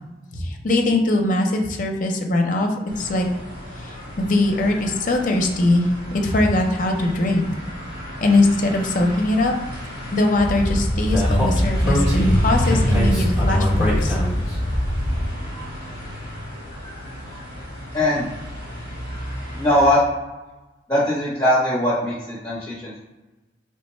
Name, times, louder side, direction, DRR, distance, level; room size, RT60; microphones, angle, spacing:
voice 1, 0.3-2.7 3.0-3.3 3.8-5.9 6.2-7.5 8.2-9.5 10.1-14.2, left 2 dB, 50° left, 3 dB, 0.5 m, -21 dB
sound 1, 2.9-19.9, equal, 65° right, 1.4 m, -33 dB
Speech, 10.4-15.3, equal, 15° right, 1.0 m, -21 dB
voice 2, 17.9-18.3 19.5-20.0 20.9-23.0, left 1 dB, 15° left, -8 dB, 0.8 m, -20 dB
3.2 x 2.1 x 4.3 m, 1.1 s
head